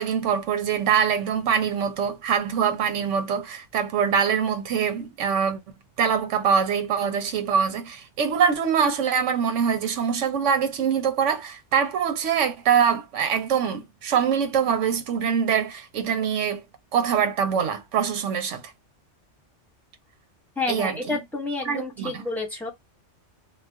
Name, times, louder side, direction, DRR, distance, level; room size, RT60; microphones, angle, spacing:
voice 1, 0.0-5.6 6.0-16.6 16.9-18.7 20.7-21.2 21.7-22.2, right 7 dB, 80° right, 1.0 m, -24 dB
voice 2, 20.5-22.7, left 3 dB, ahead, 1.2 m, -29 dB
2.4 x 2.3 x 3.4 m
omnidirectional pair, 1.2 m